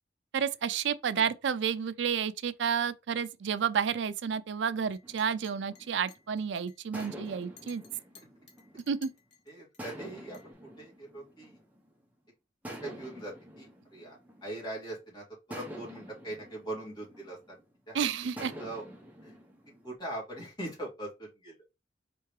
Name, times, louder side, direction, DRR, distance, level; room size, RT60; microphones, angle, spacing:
voice 1, 0.3-7.8 8.9-9.1 17.9-18.5, right 7 dB, 80° right, 0.4 m, -31 dB
Chink clink, 4.9-9.8 10.3-10.5, left 7 dB, 65° left, 1.1 m, -57 dB
sound 1, 5.0-6.3 6.9-9.2 9.8-12.0 12.6-14.9 15.5-17.8 18.4-19.9, equal, 10° right, 0.9 m, -47 dB
voice 2, 7.9-8.3 9.5-11.6 12.7-18.1 18.3-18.9 19.2-19.4 19.8-21.6, right 1 dB, 25° left, 2.5 m, -42 dB
4.5 x 3.4 x 3.2 m
head